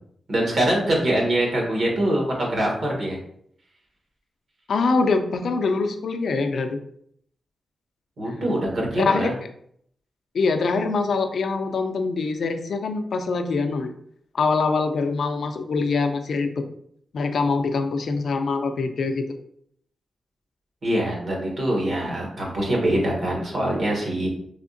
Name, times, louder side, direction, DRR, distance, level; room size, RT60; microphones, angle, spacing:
voice 1, 0.3-3.2 8.2-9.3 20.8-24.3, right 1 dB, 60° right, -2 dB, 1.1 m, -23 dB
voice 2, 4.7-6.8 9.0-9.3 10.3-13.9 14.3-16.6 17.1-19.3, left 4 dB, 65° left, 7 dB, 0.4 m, -24 dB
3.4 x 2.7 x 2.6 m, 0.67 s
wide cardioid pair, 120°, 0 cm